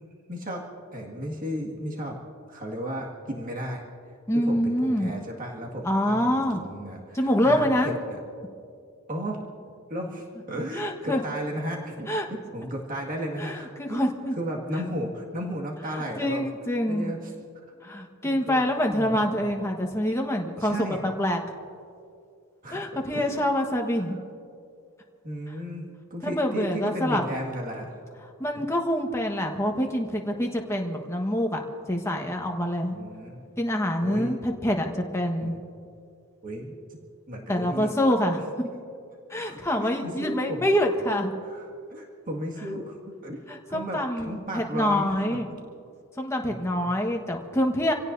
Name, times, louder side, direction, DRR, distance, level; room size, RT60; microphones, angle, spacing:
voice 1, 0.3-0.6 0.9-2.2 2.5-3.8 4.4-8.2 9.1-9.4 9.9-14.0 14.4-16.5 16.9-17.3 18.2-18.7 18.9-19.5 20.6-21.0 22.6-22.9 23.1-23.5 25.2-28.0 28.6-28.7 32.9-33.5 34.0-34.3 35.4-35.6 36.4-36.8 37.3-37.9 39.4-40.7 41.4-45.4 46.4-46.9, equal, 40° right, -1 dB, 2.0 m, -34 dB
voice 2, 4.3-5.1 5.8-6.6 7.1-7.9 10.7-11.2 12.1-12.3 13.4-14.4 15.9-17.1 17.8-20.8 21.0-21.4 22.7-24.2 26.2-27.2 28.4-31.6 31.9-33.0 33.6-35.6 37.5-38.5 39.3-41.3 43.5-45.5 46.2-47.9, equal, 15° left, 2 dB, 1.3 m, -26 dB
27.5 x 17.0 x 2.7 m, 2.4 s
head